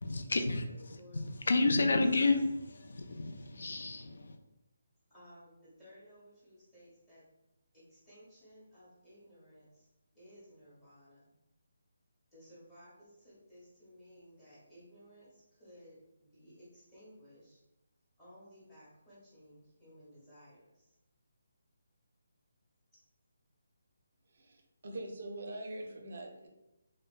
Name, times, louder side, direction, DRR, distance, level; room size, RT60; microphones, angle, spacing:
voice 1, 0.0-4.4, left 3 dB, 65° left, 7 dB, 0.3 m, -31 dB
voice 2, 0.7-1.2 5.1-7.2 7.7-9.9 10.1-11.3 12.3-17.6 18.2-20.9, equal, 10° left, -11 dB, 0.8 m, -58 dB
voice 3, 24.3-26.5, right 1 dB, 55° right, 3 dB, 0.5 m, -43 dB
2.8 x 2.0 x 2.3 m, 0.93 s
hypercardioid pair, 170°, 0 cm